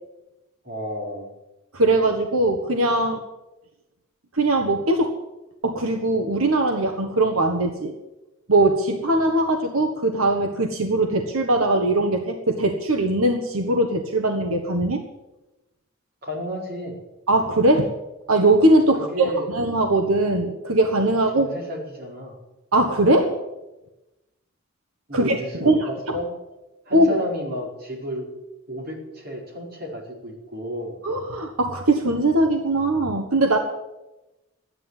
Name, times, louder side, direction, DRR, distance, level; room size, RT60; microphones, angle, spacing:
voice 1, 0.6-1.3 16.2-17.0 19.0-19.5 21.3-22.3 25.1-26.3 26.8-28.3 28.7-31.0, equal, 45° right, -2 dB, 4.8 m, -32 dB
voice 2, 1.7-3.2 4.3-5.1 5.6-7.9 8.5-15.0 17.3-17.9 18.3-21.5 22.7-23.3 25.1-25.4 25.6-25.8 26.9-27.2 31.0-33.6, right 2 dB, 85° right, 4 dB, 1.5 m, -20 dB
13.0 x 9.8 x 9.6 m, 0.99 s
head